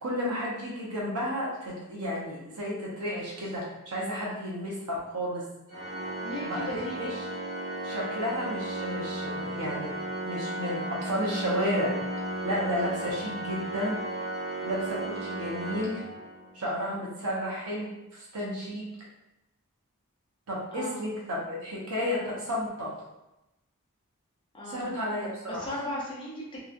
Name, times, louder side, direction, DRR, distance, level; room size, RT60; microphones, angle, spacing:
voice 1, 0.0-5.4 6.4-7.3 7.8-10.0 10.2-12.0 12.4-14.0 14.6-16.0 16.5-18.9 20.5-22.9 24.6-25.7, equal, 85° right, -5 dB, 0.9 m, -32 dB
Organ, 5.7-16.7, right 1 dB, 45° right, 0.9 m, -35 dB
voice 2, 6.2-7.2 20.7-21.0 24.5-24.9 25.5-26.6, equal, 20° left, -5 dB, 0.6 m, -37 dB
2.9 x 2.3 x 2.5 m, 0.95 s
head